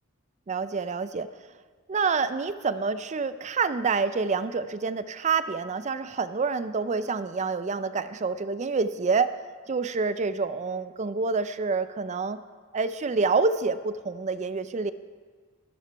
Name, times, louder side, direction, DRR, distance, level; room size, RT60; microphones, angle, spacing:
voice 1, 0.5-1.3 1.9-9.3 9.7-12.4 12.7-14.9, right 4 dB, 35° right, 13 dB, 0.4 m, -27 dB
13.5 x 12.5 x 3.4 m, 1.5 s
head